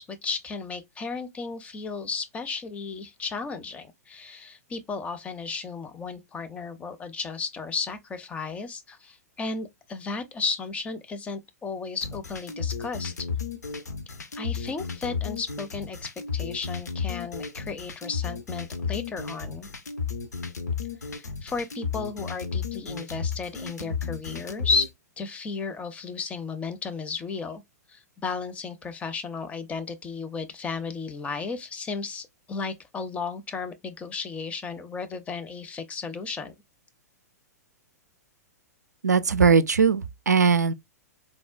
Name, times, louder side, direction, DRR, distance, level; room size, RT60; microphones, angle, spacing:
voice 1, 0.0-13.1 14.4-19.7 21.1-24.9 25.2-27.6 27.9-36.5, left 4 dB, 15° left, 0.5 m, -34 dB
sound 1, 12.0-24.9, left 5 dB, 75° left, 0.7 m, -33 dB
voice 2, 39.0-40.7, right 5 dB, 80° right, 0.4 m, -20 dB
3.7 x 2.1 x 2.4 m
figure-of-eight pair, 105°, 9 cm